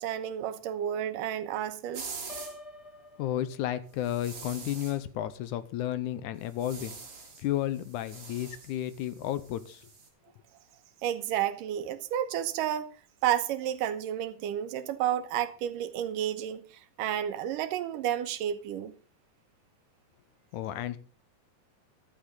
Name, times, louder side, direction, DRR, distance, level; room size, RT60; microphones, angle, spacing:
voice 1, 0.0-2.2 11.0-13.0 13.2-18.9, right 10 dB, 85° right, 2.6 m, -31 dB
sound 1, 1.9-2.6 4.0-5.0 6.4-7.5 7.7-10.1, right 5 dB, 45° right, 3.8 m, -45 dB
Piano, 2.3-4.2, left 2 dB, 15° left, 1.2 m, -48 dB
voice 2, 3.2-7.0 7.4-9.9 20.5-21.0, left 12 dB, 75° left, 2.1 m, -32 dB
14.5 x 11.5 x 3.9 m
omnidirectional pair, 3.8 m